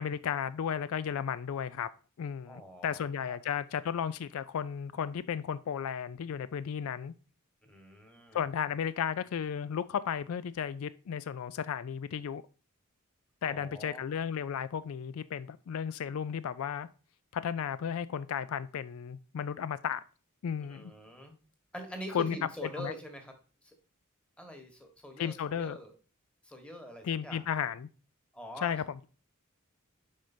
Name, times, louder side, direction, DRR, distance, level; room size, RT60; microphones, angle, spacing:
voice 1, 0.0-1.9 2.2-7.1 8.3-12.4 13.4-16.9 17.3-20.0 20.4-20.9 22.1-22.4 22.8-22.9 25.2-25.8 27.0-27.9 28.6-29.1, left 8 dB, 75° left, 0.3 m, -34 dB
voice 2, 2.5-3.4 7.6-8.4 13.4-14.0 20.7-21.3 21.7-23.3 23.6-23.7 24.4-25.9 26.4-27.4 28.3-28.7, equal, 5° left, 1.3 m, -45 dB
7.5 x 5.1 x 2.6 m
head